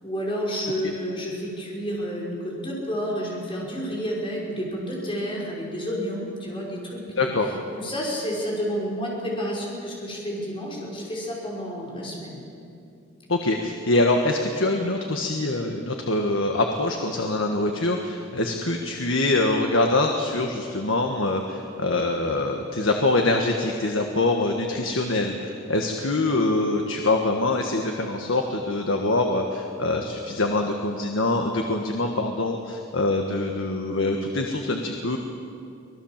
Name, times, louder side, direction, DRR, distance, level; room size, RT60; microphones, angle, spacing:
voice 1, 0.0-7.3 7.7-12.5, equal, 25° left, -3 dB, 5.7 m, -30 dB
voice 2, 7.2-7.5 13.3-35.2, left 2 dB, 75° left, 3 dB, 1.5 m, -24 dB
25.0 x 18.5 x 7.5 m, 2.5 s
head